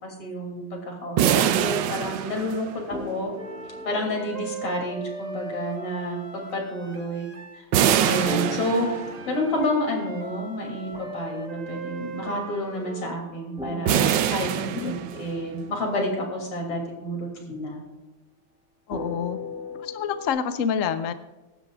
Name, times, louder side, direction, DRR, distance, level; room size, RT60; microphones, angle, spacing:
voice 1, 0.0-3.3 3.9-7.3 7.5-7.7 8.0-8.9 9.3-17.8, left 1 dB, 85° left, 1 dB, 3.8 m, -29 dB
sound 1, 1.2-5.3 8.2-11.8 12.2-15.9 16.3-16.6 18.9-20.3, left 1 dB, 5° right, 3.0 m, -39 dB
sound 2, 1.2-3.0 7.7-9.4 13.9-15.5, right 10 dB, 70° right, 1.3 m, -24 dB
sound 3, 3.3-7.6 8.6-13.2, right 3 dB, 45° right, 0.5 m, -39 dB
voice 2, 18.9-19.4 19.8-21.1, left 7 dB, 65° left, 9 dB, 0.8 m, -27 dB
24.0 x 12.0 x 2.4 m, 1.1 s
omnidirectional pair, 2.4 m